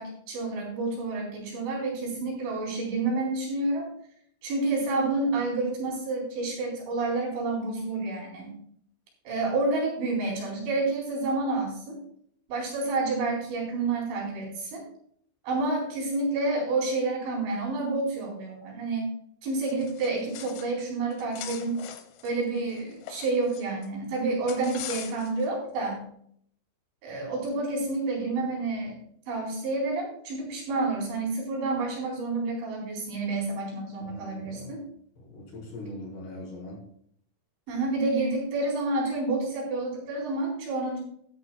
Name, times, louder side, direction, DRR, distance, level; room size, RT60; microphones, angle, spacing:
voice 1, 0.0-3.9 4.4-8.5 9.2-12.0 12.5-14.8 15.4-19.1 19.4-21.8 22.2-26.1 27.0-29.0 29.3-34.8 37.7-41.0, right 3 dB, 70° right, -3 dB, 6.6 m, -29 dB
sound 1, 19.7-20.8 21.1-23.9 24.5-25.5, left 11 dB, 80° left, 3.5 m, -42 dB
voice 2, 34.0-34.7 35.2-36.8, left 1 dB, 60° left, -3 dB, 6.5 m, -41 dB
13.5 x 13.0 x 2.3 m, 0.65 s
omnidirectional pair, 5.7 m